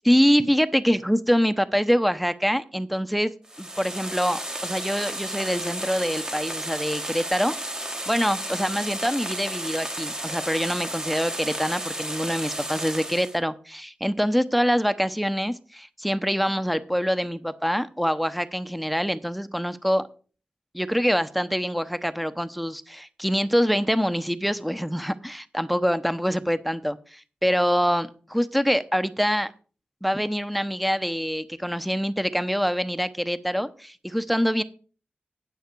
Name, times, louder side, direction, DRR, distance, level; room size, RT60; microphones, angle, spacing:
voice 1, 0.0-3.3 3.6-7.5 8.1-20.1 20.7-29.5 30.0-34.6, equal, ahead, 0.9 m, -25 dB
sound 1, 3.4-13.4, right 1 dB, 20° right, 1.4 m, -33 dB
9.3 x 9.2 x 4.7 m
cardioid pair, 45°, 3 cm